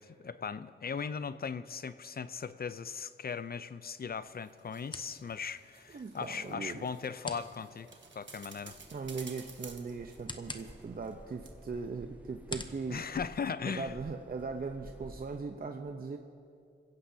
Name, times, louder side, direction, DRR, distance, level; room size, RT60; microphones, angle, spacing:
voice 1, 0.0-7.9 8.2-8.8 12.9-13.9, left 6 dB, 50° left, 13 dB, 0.5 m, -38 dB
sound 1, 3.1-14.1, left 2 dB, 25° left, 0.9 m, -50 dB
sound 2, 4.2-11.2 11.5-11.6, right 4 dB, 70° right, 1.3 m, -54 dB
voice 2, 5.9-6.9 8.9-13.1 13.7-16.2, right 4 dB, 50° right, 4 dB, 0.8 m, -39 dB
sound 3, 8.7-15.4, right 1 dB, 10° right, 0.6 m, -53 dB
27.5 x 16.0 x 2.8 m, 2.5 s
wide cardioid pair, 80°, 20 cm